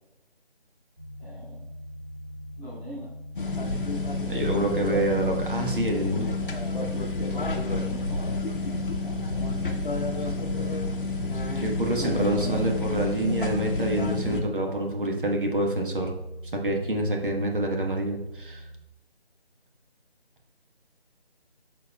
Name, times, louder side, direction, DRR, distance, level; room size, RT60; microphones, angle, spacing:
sound 1, 1.0-18.8, left 1 dB, 15° right, 1.3 m, -43 dB
voice 1, 1.2-1.7 2.6-3.1 5.9-6.5 7.6-8.4 9.0-9.5 12.0-12.9, equal, 10° left, -10 dB, 1.3 m, -42 dB
sound 2, 3.4-14.4, left 2 dB, 55° left, 0.9 m, -29 dB
voice 2, 4.3-6.4 11.6-16.1 16.5-18.7, right 1 dB, 55° right, 1 dB, 1.3 m, -27 dB
13.0 x 4.3 x 2.3 m, 0.95 s
figure-of-eight pair, 160°, 32 cm